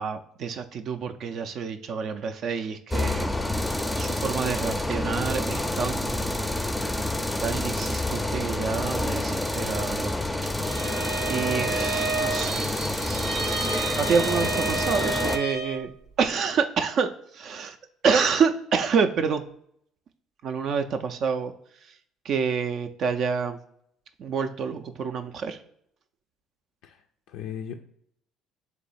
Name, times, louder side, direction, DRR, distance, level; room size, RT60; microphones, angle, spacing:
voice 1, 0.0-3.3 3.7-6.5 7.4-10.1 10.4-10.5 10.8-12.7 14.0-15.9 16.2-17.8 18.0-19.4 20.4-21.5 21.8-22.0 22.2-23.6 24.2-25.6, right 6 dB, 60° right, 6 dB, 0.3 m, -28 dB
sound 1, 2.9-15.4, left 1 dB, 10° left, 0.4 m, -28 dB
Bowed string instrument, 10.6-15.9, right 3 dB, 85° right, 0.7 m, -30 dB
voice 2, 26.8-27.7, left 8 dB, 75° left, 3 dB, 0.3 m, -38 dB
3.7 x 3.1 x 4.0 m, 0.70 s
hypercardioid pair, 65°, 0 cm